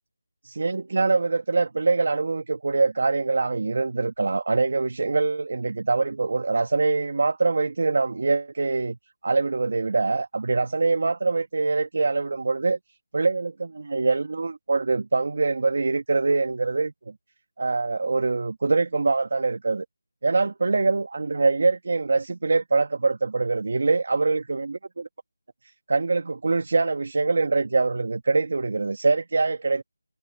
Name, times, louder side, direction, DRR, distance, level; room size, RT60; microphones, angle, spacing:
voice 1, 0.4-9.0 9.2-12.8 13.1-16.9 17.6-19.8 20.2-25.1 25.9-29.8, right 3 dB, 55° right, 1.7 m, -24 dB
figure-of-eight pair, 170°, 0 cm